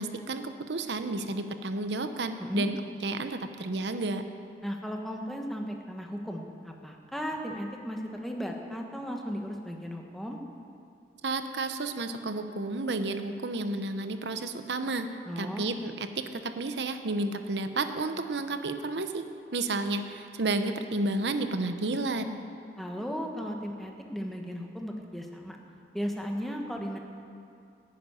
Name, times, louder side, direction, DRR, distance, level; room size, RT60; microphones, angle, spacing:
voice 1, 0.0-2.8 3.0-4.2 11.2-15.1 15.4-19.2 19.5-22.4, right 2 dB, 85° right, 8 dB, 0.8 m, -31 dB
voice 2, 4.6-10.4 15.3-15.7 22.8-25.6 25.9-27.0, equal, ahead, 1 dB, 1.2 m, -36 dB
11.0 x 10.5 x 9.1 m, 2.5 s
head